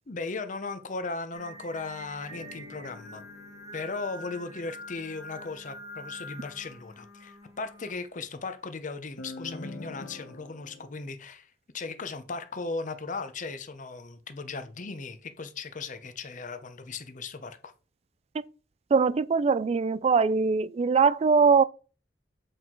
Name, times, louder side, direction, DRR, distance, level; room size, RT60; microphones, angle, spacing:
voice 1, 0.1-3.2 3.7-17.7, left 3 dB, 45° left, 0.7 m, -37 dB
Singing, 1.3-7.9, equal, 20° right, 0.9 m, -45 dB
sound 1, 2.3-4.9 9.2-10.9, left 2 dB, 85° left, 0.8 m, -45 dB
voice 2, 18.9-21.6, right 5 dB, 35° right, 0.3 m, -22 dB
7.9 x 4.6 x 3.8 m
head